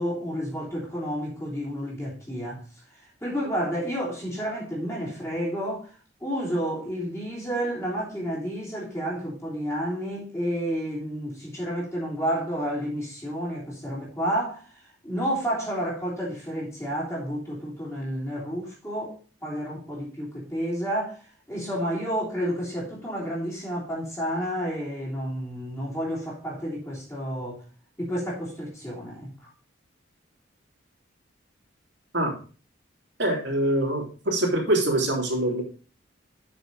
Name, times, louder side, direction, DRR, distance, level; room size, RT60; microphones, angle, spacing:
voice 1, 0.0-2.6 3.2-5.9 6.2-14.7 15.0-21.2 21.5-27.6 28.0-29.5, equal, 15° left, 3.2 m, -30 dB
voice 2, 33.2-35.6, right 1 dB, 65° right, 3.0 m, -24 dB
7.1 x 6.1 x 5.2 m
head